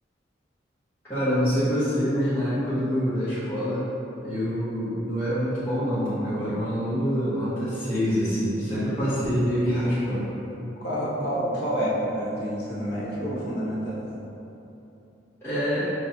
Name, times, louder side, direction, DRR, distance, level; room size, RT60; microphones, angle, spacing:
voice 1, 1.1-3.9 4.2-10.3 15.4-15.8, equal, 15° left, -15 dB, 1.2 m, -25 dB
voice 2, 10.5-14.0, equal, 55° left, -7 dB, 0.9 m, -28 dB
5.3 x 3.2 x 2.8 m, 3.0 s
head